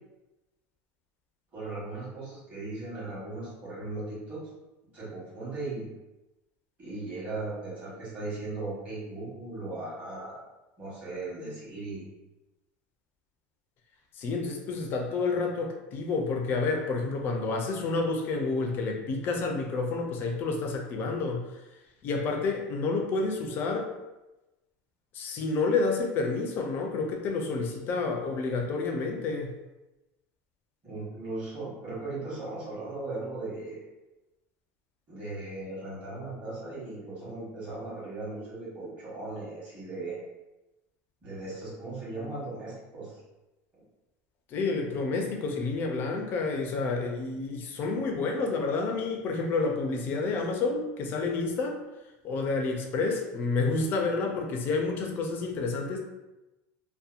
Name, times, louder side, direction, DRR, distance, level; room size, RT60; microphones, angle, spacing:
voice 1, 1.5-4.4 4.9-5.9 6.8-10.4 10.8-12.1 30.8-33.8 35.1-40.1 41.2-43.2, right 2 dB, 25° right, -8 dB, 1.1 m, -37 dB
voice 2, 14.2-21.5 22.0-23.9 25.1-29.5 44.5-51.8 52.2-56.0, left 3 dB, 35° left, 2 dB, 0.4 m, -29 dB
2.7 x 2.1 x 2.4 m, 1.0 s
supercardioid pair, 165°, 7 cm